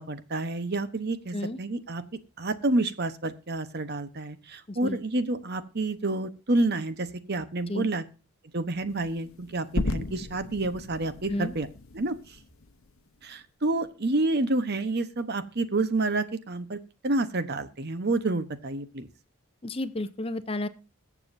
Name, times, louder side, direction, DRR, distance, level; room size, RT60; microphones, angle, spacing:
voice 1, 0.0-2.0 2.4-8.0 8.5-11.7 11.9-12.4 13.2-19.1, right 2 dB, 50° right, 11 dB, 1.0 m, -29 dB
sound 1, 8.9-13.2, left 2 dB, 70° left, 0.8 m, -36 dB
voice 2, 19.6-20.7, left 1 dB, 25° left, 12 dB, 0.6 m, -32 dB
21.5 x 7.2 x 2.7 m, 0.34 s
head